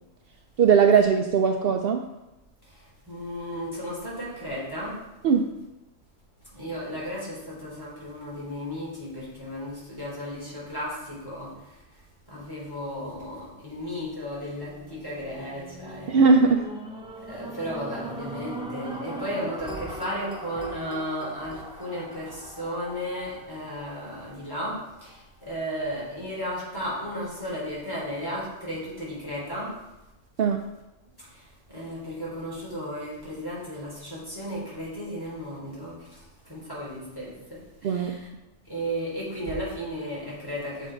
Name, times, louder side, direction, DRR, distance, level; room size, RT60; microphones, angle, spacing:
voice 1, 0.6-2.0 5.2-5.6 16.1-16.6 30.4-30.6 37.8-38.2, right 5 dB, 75° right, 4 dB, 0.5 m, -19 dB
voice 2, 3.1-5.0 6.5-11.5 12.3-16.3 17.3-29.8 31.7-36.2 36.5-38.3 38.7-40.9, equal, 15° left, -7 dB, 3.3 m, -34 dB
sound 1, 14.5-24.8 25.4-25.5, right 2 dB, 5° right, 0.5 m, -40 dB
7.0 x 6.2 x 4.5 m, 0.97 s
omnidirectional pair, 1.6 m